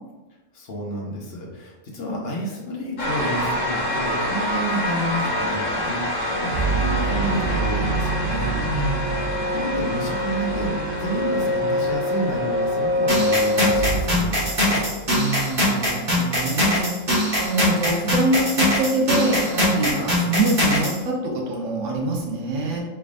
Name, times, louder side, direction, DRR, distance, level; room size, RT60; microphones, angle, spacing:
voice 1, 0.5-8.6 9.5-14.9, equal, 55° left, -2 dB, 1.1 m, -30 dB
sound 1, 3.0-14.4, equal, 80° left, 1.3 m, -28 dB
sound 2, 6.5-15.1, equal, 55° right, 1.2 m, -25 dB
voice 2, 8.5-9.1 15.1-16.9 17.4-22.8, right 2 dB, 80° right, -1 dB, 1.1 m, -24 dB
sound 3, 13.1-21.0, left 1 dB, 40° right, 1.7 m, -22 dB
4.7 x 3.5 x 2.4 m, 1.2 s
omnidirectional pair, 1.3 m